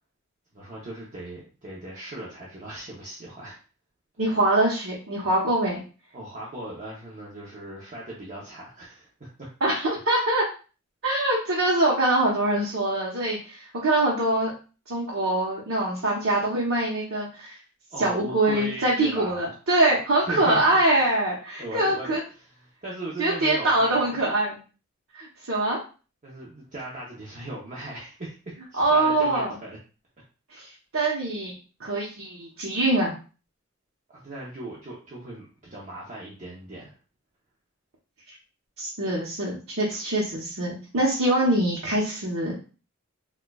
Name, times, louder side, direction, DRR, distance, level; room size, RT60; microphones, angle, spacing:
voice 1, 0.5-3.6 6.1-9.5 17.9-19.5 20.3-20.8 21.6-24.2 26.2-29.8 34.1-36.9, right 1 dB, 35° right, -5 dB, 0.7 m, -38 dB
voice 2, 4.2-5.8 9.6-10.5 11.0-14.5 14.9-17.5 18.0-22.2 23.2-24.6 25.2-25.8 28.8-29.6 30.5-30.7 30.9-31.5 31.8-33.1 38.8-42.6, right 1 dB, 65° right, -5 dB, 0.9 m, -24 dB
4.3 x 2.3 x 2.3 m, 0.35 s
head